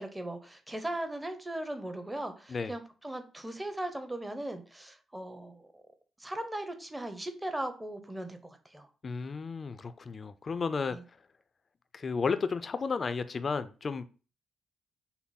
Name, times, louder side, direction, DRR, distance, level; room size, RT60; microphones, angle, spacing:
voice 1, 0.0-5.7 6.2-8.9 10.9-11.0, right 1 dB, 15° right, 0.8 m, -38 dB
voice 2, 9.0-11.0 11.9-14.1, left 5 dB, 45° left, 0.5 m, -33 dB
5.9 x 2.0 x 4.0 m
cardioid pair, 65°, 0 cm